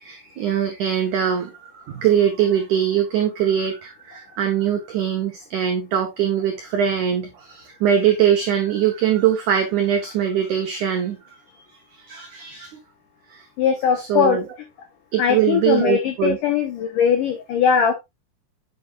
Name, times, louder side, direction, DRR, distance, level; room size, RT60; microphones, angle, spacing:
voice 1, 0.0-11.2 11.9-12.7 13.3-13.5 14.0-14.4 15.1-16.4, right 9 dB, 85° right, 1.7 m, -22 dB
voice 2, 13.6-14.4 15.2-17.9, left 7 dB, 75° left, 1.9 m, -20 dB
7.9 x 6.8 x 2.4 m
omnidirectional pair, 5.0 m